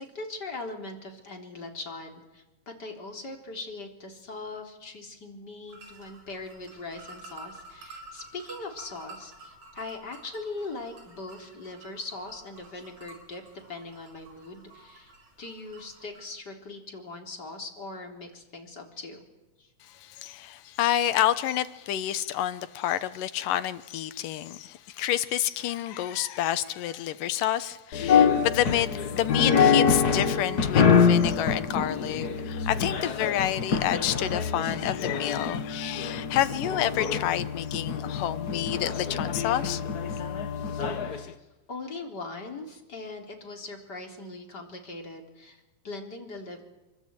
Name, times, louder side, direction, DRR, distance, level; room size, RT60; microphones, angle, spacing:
voice 1, 0.0-13.4 13.7-15.1 15.4-19.3 19.6-19.7 40.8-46.6, left 3 dB, 30° left, 4.0 m, -40 dB
sound 1, 5.7-16.2, right 2 dB, 50° right, 6.4 m, -50 dB
voice 2, 19.8-39.8, left 12 dB, 85° left, 2.7 m, -29 dB
sound 2, 27.9-41.2, left 6 dB, 50° left, 1.2 m, -25 dB
27.0 x 24.0 x 9.1 m
omnidirectional pair, 3.8 m